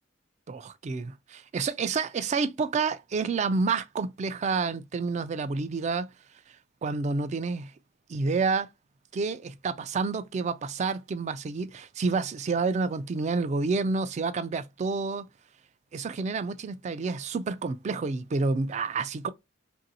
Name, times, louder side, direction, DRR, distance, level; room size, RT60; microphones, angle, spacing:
voice 1, 0.5-6.1 6.8-7.7 8.1-8.7 9.1-15.2 15.9-19.3, right 4 dB, 35° right, 0.3 m, -29 dB
2.9 x 2.6 x 2.7 m
head